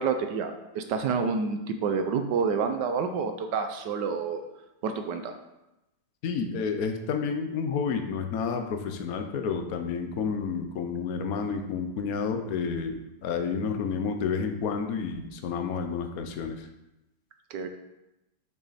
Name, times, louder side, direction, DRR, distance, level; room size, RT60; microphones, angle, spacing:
voice 1, 0.0-4.4 4.8-5.4 17.5-17.7, right 5 dB, 75° right, 6 dB, 1.3 m, -28 dB
voice 2, 6.2-16.7, left 5 dB, 60° left, 6 dB, 1.1 m, -30 dB
7.1 x 6.4 x 4.1 m, 0.93 s
omnidirectional pair, 1.9 m